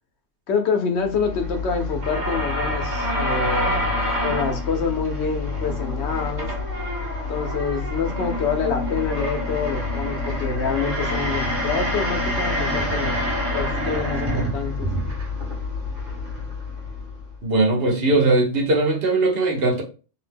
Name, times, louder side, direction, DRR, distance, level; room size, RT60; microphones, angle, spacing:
voice 1, 0.5-3.9 4.2-6.5 7.3-13.2 13.5-14.9, left 5 dB, 75° left, 0.9 m, -26 dB
sound 1, 1.0-17.4, left 1 dB, 45° right, 0.9 m, -27 dB
voice 2, 17.4-19.8, right 2 dB, 65° right, 1.0 m, -19 dB
2.8 x 2.1 x 3.3 m
omnidirectional pair, 1.1 m